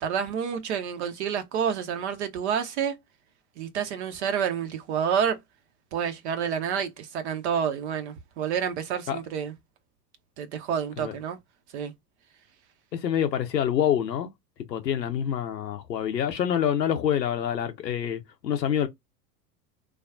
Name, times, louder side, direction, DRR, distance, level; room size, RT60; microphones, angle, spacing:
voice 1, 0.0-3.0 3.6-5.4 5.9-9.5 10.4-11.4 11.7-11.9, right 8 dB, 45° right, 0.6 m, -29 dB
voice 2, 12.9-14.3 14.7-18.9, left 9 dB, 80° left, 0.6 m, -26 dB
3.4 x 2.3 x 2.3 m
figure-of-eight pair, 85°, 50 cm